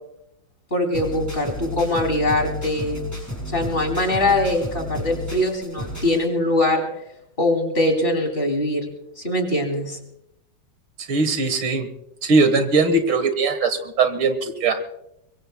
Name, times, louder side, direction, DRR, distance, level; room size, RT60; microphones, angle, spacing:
voice 1, 0.7-3.1 3.5-6.8 7.4-8.9 9.2-10.0, left 1 dB, 25° left, 3 dB, 2.9 m, -22 dB
sound 1, 0.9-6.2, left 1 dB, 10° left, 6.5 m, -32 dB
voice 2, 11.1-11.9 12.2-14.8, right 3 dB, 75° right, 9 dB, 2.2 m, -20 dB
23.5 x 23.0 x 2.2 m, 0.80 s
omnidirectional pair, 2.2 m